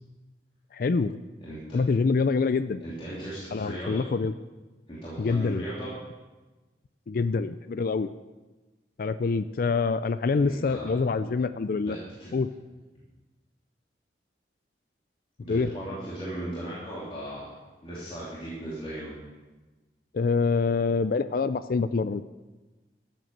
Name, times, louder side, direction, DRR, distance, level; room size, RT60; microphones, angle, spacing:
voice 1, 0.7-1.2 1.7-2.8 3.5-4.3 5.2-5.6 7.1-8.1 9.0-12.0 12.3-12.5 15.5-15.7 20.1-22.2, left 4 dB, 50° left, 12 dB, 0.4 m, -25 dB
voice 2, 1.4-2.0 2.8-4.0 4.9-5.9 10.4-11.3 11.8-12.3 15.4-17.5 17.8-19.2, right 1 dB, 30° left, -9 dB, 3.0 m, -37 dB
13.5 x 7.7 x 6.6 m, 1.2 s
head